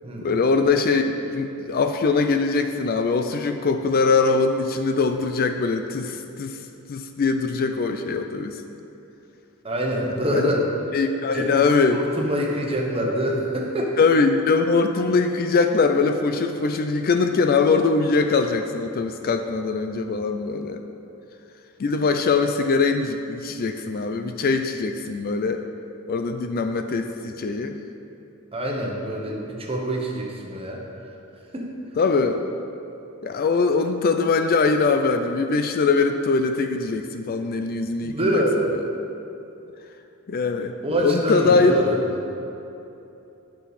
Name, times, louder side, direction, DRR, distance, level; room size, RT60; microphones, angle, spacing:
voice 1, 0.2-6.6 6.9-8.6 10.3-10.5 10.9-12.0 14.0-20.8 21.8-25.6 26.1-27.8 32.0-32.4 33.2-38.4 40.3-40.7 41.0-41.7, left 4 dB, 45° left, 6 dB, 0.4 m, -22 dB
voice 2, 9.6-10.6 11.3-11.6 11.9-14.0 28.5-30.8 31.5-31.7 38.0-38.7 40.8-42.0, equal, 25° right, -1 dB, 1.1 m, -25 dB
9.7 x 6.0 x 4.1 m, 2.9 s
head